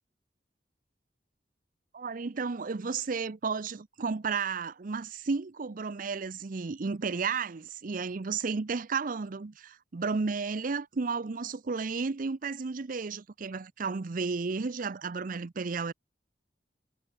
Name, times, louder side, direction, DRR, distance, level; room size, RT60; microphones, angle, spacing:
voice 1, 1.9-15.9, right 4 dB, 50° right, 0.6 m, -33 dB
head